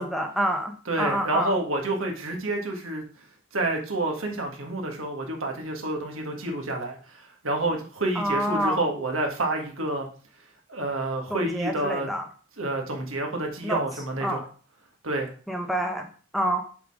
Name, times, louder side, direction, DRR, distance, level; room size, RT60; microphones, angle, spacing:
voice 1, 0.0-1.6 8.1-8.9 11.3-12.3 13.6-13.8 14.2-14.5 15.5-16.1 16.3-16.6, right 1 dB, ahead, 3 dB, 0.7 m, -27 dB
voice 2, 0.9-3.0 3.5-10.1 10.7-12.1 12.6-14.4 15.0-15.3, right 2 dB, 75° right, 2 dB, 1.6 m, -29 dB
6.9 x 3.8 x 4.8 m, 0.40 s
head